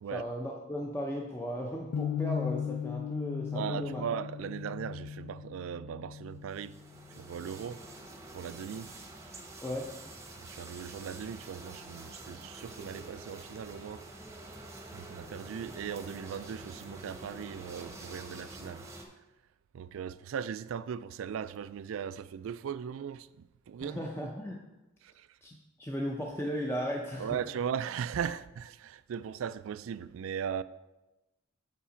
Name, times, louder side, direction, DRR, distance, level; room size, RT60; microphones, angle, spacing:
voice 1, 0.1-4.0 9.6-9.9 23.8-24.6 25.4-27.4, equal, 10° left, 0.6 m, -36 dB
sound 1, 1.9-8.0, left 8 dB, 85° left, 0.3 m, -38 dB
voice 2, 3.5-6.8 7.1-7.8 8.3-8.9 10.4-14.0 14.9-18.9 19.7-24.1 25.0-25.4 27.2-30.6, right 8 dB, 75° right, 0.3 m, -38 dB
sound 2, 6.5-19.0, right 2 dB, 15° right, 0.9 m, -47 dB
7.3 x 5.6 x 5.0 m
head